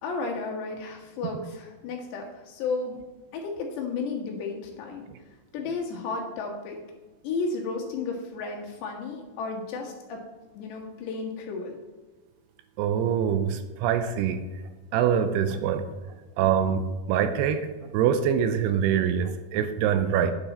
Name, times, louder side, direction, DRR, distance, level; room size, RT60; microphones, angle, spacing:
voice 1, 0.0-3.0 3.3-5.1 5.5-6.8 7.2-10.2 10.6-11.8, left 4 dB, 85° left, 0 dB, 3.7 m, -33 dB
voice 2, 12.8-14.4 14.9-15.8 16.4-17.7 17.9-20.3, right 8 dB, 85° right, 10 dB, 2.5 m, -24 dB
9.6 x 7.0 x 4.2 m, 1.3 s
omnidirectional pair, 4.8 m